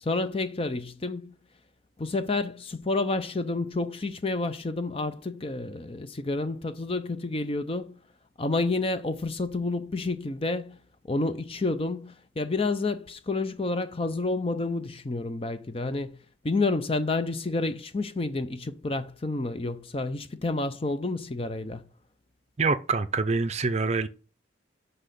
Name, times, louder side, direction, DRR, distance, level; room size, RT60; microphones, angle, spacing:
voice 1, 0.0-1.3 2.0-8.0 8.4-10.8 11.1-16.2 16.4-21.8, left 3 dB, 30° left, 0.5 m, -29 dB
voice 2, 22.6-24.1, right 4 dB, 35° right, 0.5 m, -25 dB
6.0 x 5.4 x 6.7 m
head